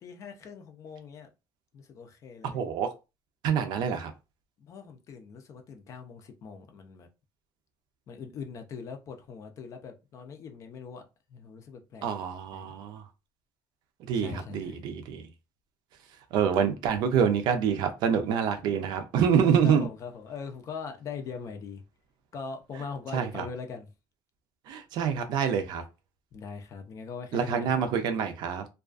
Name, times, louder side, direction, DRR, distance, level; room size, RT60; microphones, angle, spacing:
voice 1, 0.0-1.3 1.7-2.6 4.6-7.1 8.1-11.0 11.3-12.1 12.5-12.8 14.1-14.8 19.6-21.8 22.3-23.9 26.3-28.0, left 5 dB, 40° left, 0.5 m, -41 dB
voice 2, 2.5-2.9 3.4-4.1 12.0-13.0 14.1-15.2 16.3-19.9 23.1-23.5 24.7-25.8 27.3-28.7, right 7 dB, 65° right, 0.5 m, -26 dB
2.4 x 2.3 x 2.3 m
cardioid pair, 140°, 8 cm